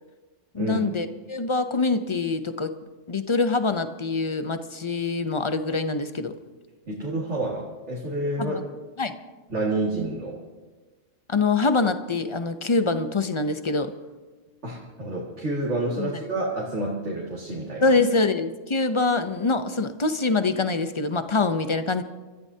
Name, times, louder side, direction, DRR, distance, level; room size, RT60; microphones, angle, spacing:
voice 1, 0.5-2.7 3.1-6.3 8.4-8.6 9.0-9.2 11.3-13.9 16.0-16.2 17.8-22.0, left 3 dB, 30° left, 9 dB, 0.6 m, -24 dB
voice 2, 6.9-8.6 9.5-10.4 14.6-17.9, right 2 dB, 65° right, -4 dB, 2.4 m, -29 dB
27.5 x 14.0 x 2.8 m, 1.3 s
omnidirectional pair, 1.3 m